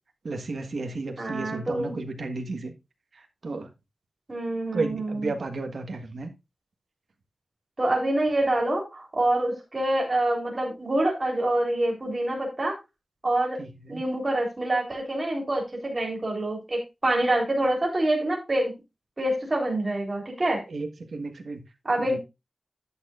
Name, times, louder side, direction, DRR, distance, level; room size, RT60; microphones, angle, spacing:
voice 1, 0.2-2.7 3.1-3.7 4.7-6.3 13.6-14.0 20.7-21.6 22.0-22.2, right 3 dB, 70° right, 1.5 m, -33 dB
voice 2, 1.2-1.9 4.3-5.3 7.8-12.8 13.2-13.6 13.9-18.7 19.2-20.6 21.8-22.2, right 1 dB, 30° right, 3.7 m, -26 dB
11.0 x 8.8 x 2.5 m
wide cardioid pair, 105°, 0 cm